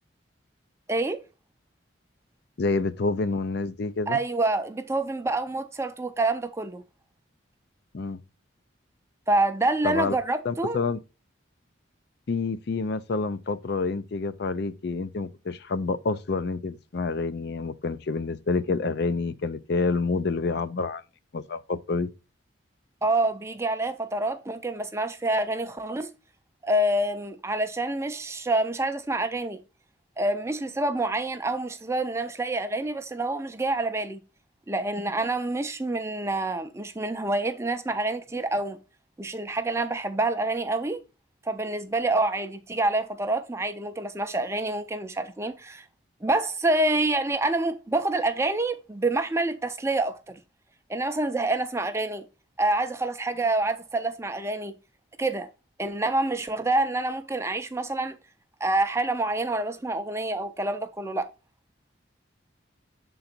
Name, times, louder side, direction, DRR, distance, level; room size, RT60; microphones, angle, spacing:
voice 1, 0.9-1.2 4.1-6.8 9.3-10.8 23.0-26.1 26.6-29.6 30.2-34.2 34.7-38.8 39.2-41.0 41.5-45.8 46.2-50.4 50.9-52.2 52.6-54.7 55.2-55.5 55.8-58.2 58.6-61.3, right 2 dB, 15° right, 0.5 m, -27 dB
voice 2, 2.6-4.2 7.9-8.2 9.8-10.2 10.4-11.0 12.3-21.0 21.3-22.1, left 4 dB, 55° left, 0.4 m, -28 dB
6.8 x 3.9 x 4.3 m
head